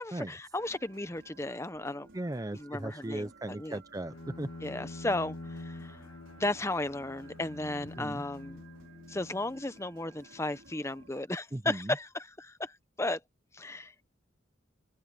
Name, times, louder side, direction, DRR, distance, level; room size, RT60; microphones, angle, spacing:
voice 1, 0.0-2.1 2.5-3.8 4.6-6.0 6.4-8.6 9.1-13.2 13.5-14.1, left 2 dB, 15° left, 0.8 m, -35 dB
sound 1, 0.6-11.3, right 3 dB, 70° right, 5.4 m, -57 dB
voice 2, 2.1-4.5 7.9-8.2 11.5-12.0, right 1 dB, 15° right, 0.6 m, -37 dB
Bowed string instrument, 4.0-9.9, left 2 dB, 85° left, 1.4 m, -46 dB
head